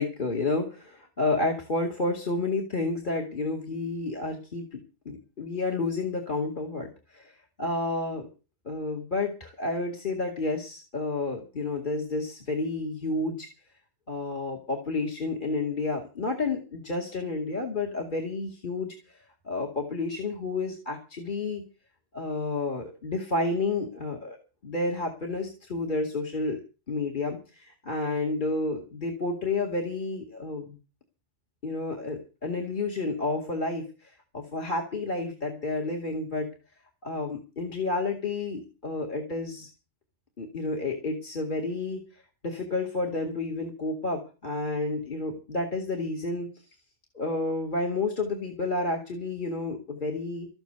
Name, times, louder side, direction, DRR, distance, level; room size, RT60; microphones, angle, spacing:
voice 1, 0.0-4.8 5.1-8.3 8.7-13.5 14.1-19.0 19.4-21.6 22.1-24.4 24.6-26.6 26.9-30.8 31.6-36.5 37.0-39.7 40.4-42.0 42.4-46.5 47.1-50.5, left 3 dB, 40° left, 5 dB, 2.6 m, -30 dB
14.0 x 8.9 x 8.1 m, 0.33 s
omnidirectional pair, 1.3 m